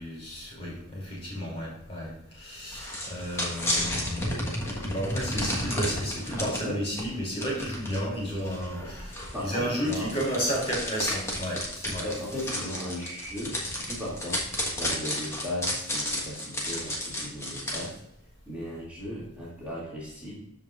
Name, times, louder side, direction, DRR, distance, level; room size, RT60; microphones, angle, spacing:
voice 1, 0.0-12.0, equal, 30° left, -4 dB, 3.0 m, -32 dB
sound 1, 2.7-6.6 7.0-7.1 7.4-17.9, left 1 dB, 15° left, 1.4 m, -32 dB
voice 2, 6.4-6.8 8.8-9.0 9.3-10.1 12.0-14.4 14.7-18.0 18.5-20.3, equal, 5° right, -8 dB, 2.5 m, -36 dB
13.0 x 5.3 x 2.5 m, 0.80 s
head